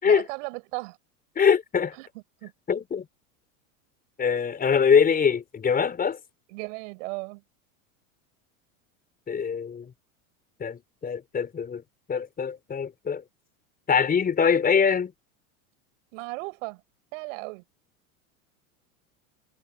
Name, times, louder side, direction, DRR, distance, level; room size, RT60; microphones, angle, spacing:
voice 1, 0.0-1.0 2.0-2.1 2.4-2.5 6.5-7.4 16.1-16.8 17.1-17.6, right 27 dB, 65° right, 6.5 m, -35 dB
voice 2, 1.4-1.9 2.7-3.0 4.2-6.2 9.3-9.9 10.6-11.8 12.1-13.2 13.9-15.1, left 6 dB, 20° left, 4.8 m, -23 dB
supercardioid pair, 130°, 40 cm